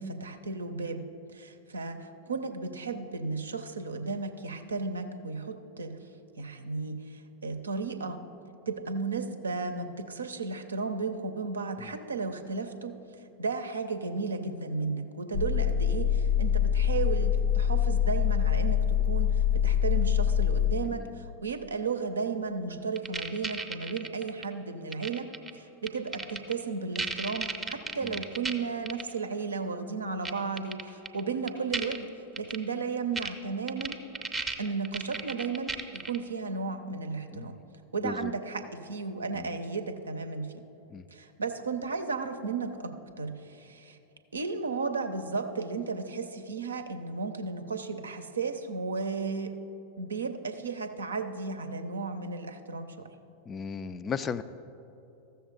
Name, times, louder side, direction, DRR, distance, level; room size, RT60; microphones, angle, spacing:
voice 1, 0.0-6.0 6.4-8.2 8.7-13.0 13.4-25.3 25.5-32.1 32.4-34.0 34.6-37.6 37.9-40.6 41.1-44.0 44.3-49.5 50.0-53.1, right 4 dB, 75° right, 8 dB, 0.6 m, -34 dB
sound 1, 15.3-20.7, left 8 dB, 70° left, 0.6 m, -25 dB
voice 2, 20.9-21.2 28.0-28.2 37.3-37.6 38.0-38.3 39.3-39.5 40.9-41.0 53.5-54.4, left 6 dB, 25° left, 13 dB, 0.3 m, -36 dB
sound 2, 23.0-24.4 24.9-25.5 25.9-26.5 27.0-28.5 28.9-29.0 30.2-30.3 30.6-31.2 31.5-32.0 32.4-32.6 33.2-33.3 33.7-36.2, right 3 dB, 10° right, 0.6 m, -34 dB
14.0 x 6.9 x 3.9 m, 2.8 s
figure-of-eight pair, 90°, 0 cm